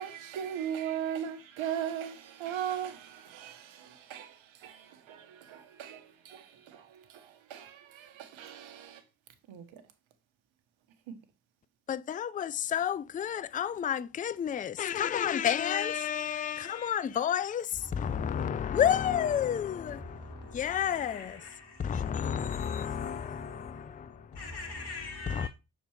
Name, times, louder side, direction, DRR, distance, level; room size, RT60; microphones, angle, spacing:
voice 1, 0.0-9.0 9.5-9.8 11.1-11.2, right 9 dB, 70° right, 1.2 m, -38 dB
voice 2, 11.9-21.4 21.8-24.4 25.3-25.5, left 9 dB, 20° left, 0.3 m, -31 dB
voice 3, 15.4-17.1 17.8-19.1 19.4-25.5, left 3 dB, 50° left, 2.6 m, -45 dB
6.8 x 4.3 x 3.2 m
hypercardioid pair, 50°, 48 cm